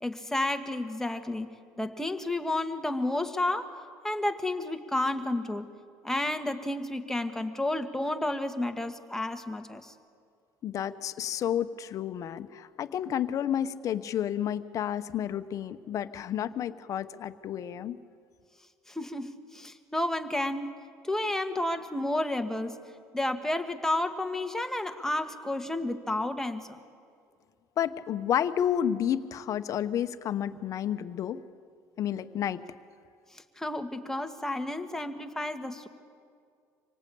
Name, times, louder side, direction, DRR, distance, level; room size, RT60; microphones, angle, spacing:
voice 1, 0.0-3.7 4.0-5.7 6.0-9.9 18.9-20.8 21.0-22.8 23.1-26.8 33.3-35.9, left 1 dB, 5° left, 6 dB, 1.6 m, -31 dB
voice 2, 10.6-18.0 27.8-31.4 32.0-32.6, left 10 dB, 50° left, 10 dB, 1.0 m, -31 dB
26.0 x 18.0 x 8.5 m, 2.3 s
supercardioid pair, 95°, 7 cm